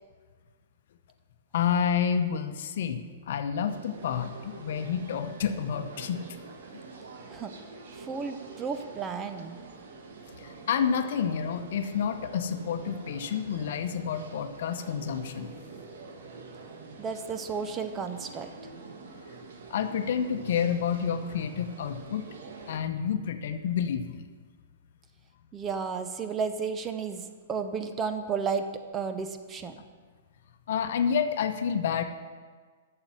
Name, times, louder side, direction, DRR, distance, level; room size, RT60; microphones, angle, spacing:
voice 1, 1.5-6.2 10.4-15.5 19.7-22.3 22.7-24.2 30.7-32.0, left 7 dB, 65° left, 8 dB, 0.8 m, -29 dB
sound 1, 3.7-22.8, right 4 dB, 65° right, 1.5 m, -46 dB
voice 2, 7.9-9.6 17.0-18.5 25.5-27.2 27.5-28.7 28.9-29.7, right 5 dB, 20° right, 8 dB, 0.8 m, -32 dB
8.9 x 6.8 x 7.4 m, 1.6 s
hypercardioid pair, 120°, 0 cm